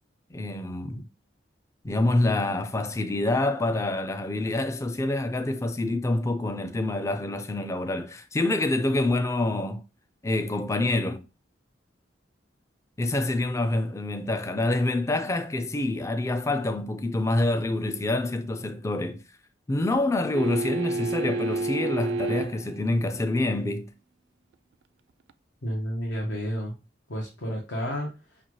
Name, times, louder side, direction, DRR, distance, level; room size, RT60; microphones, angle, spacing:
voice 1, 0.3-1.0 1.8-9.8 10.2-11.2 13.0-19.2 19.7-23.9, left 2 dB, 15° left, 0.3 m, -26 dB
sound 1, 20.3-22.7 25.3-25.4, right 3 dB, 70° right, 0.3 m, -29 dB
voice 2, 25.6-26.7 27.1-28.4, equal, 80° left, 1.1 m, -31 dB
5.6 x 2.3 x 3.1 m
head